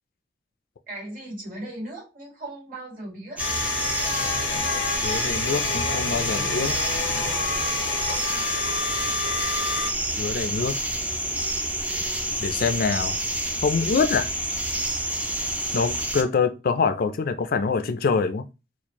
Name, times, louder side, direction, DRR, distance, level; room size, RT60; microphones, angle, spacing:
voice 1, 0.9-3.5, right 1 dB, 50° right, 2.1 m, -37 dB
sound 1, 3.4-9.9, left 4 dB, 90° left, 0.7 m, -29 dB
sound 2, 3.4-16.2, right 1 dB, 10° right, 0.4 m, -28 dB
voice 2, 5.0-6.7 10.2-10.8 12.4-13.2 13.6-14.3 15.7-18.5, left 5 dB, 55° left, 0.4 m, -25 dB
4.3 x 2.4 x 2.9 m
head